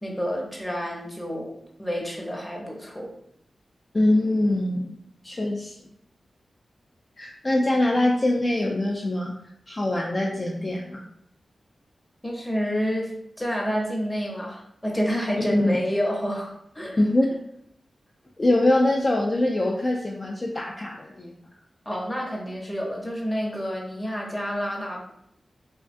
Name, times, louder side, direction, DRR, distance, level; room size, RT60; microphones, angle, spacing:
voice 1, 0.0-1.5 1.8-3.1 12.2-13.1 13.4-17.0 21.9-25.0, equal, 15° left, -1 dB, 0.7 m, -29 dB
voice 2, 3.9-5.0 5.2-5.8 7.2-9.3 9.7-11.0 15.5-15.7 17.0-17.3 18.4-21.3, left 1 dB, 40° left, -1 dB, 0.3 m, -23 dB
2.4 x 2.3 x 2.5 m, 0.74 s
cardioid pair, 50°, 0 cm